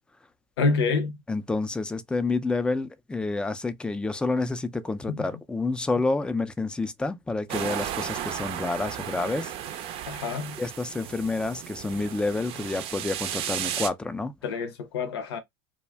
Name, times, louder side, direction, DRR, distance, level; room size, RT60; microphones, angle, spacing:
voice 1, 0.6-1.2 5.1-5.3 10.1-10.6 14.4-15.4, left 4 dB, 85° left, 0.7 m, -27 dB
voice 2, 1.3-9.5 10.6-14.3, left 3 dB, 5° left, 0.4 m, -29 dB
sound 1, 7.5-13.9, right 10 dB, 45° right, 0.5 m, -34 dB
2.4 x 2.1 x 3.3 m
supercardioid pair, 110°, 13 cm